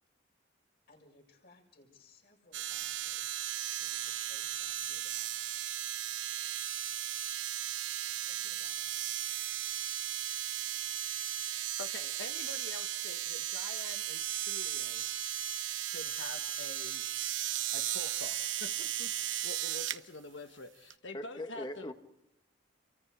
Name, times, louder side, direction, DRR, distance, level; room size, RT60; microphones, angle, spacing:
voice 1, 0.9-5.5 8.3-8.8 18.6-18.8 20.0-20.1, left 2 dB, 55° left, 1 dB, 6.9 m, -63 dB
sound 1, 2.5-20.0 20.9-21.0, right 12 dB, 85° right, 0.9 m, -36 dB
voice 2, 11.5-15.0 15.8-17.0 17.5-18.7 19.0-21.9, left 3 dB, 70° left, 7 dB, 1.3 m, -47 dB
voice 3, 21.1-21.9, left 1 dB, 25° left, 7 dB, 1.7 m, -40 dB
29.0 x 24.0 x 5.0 m, 0.80 s
head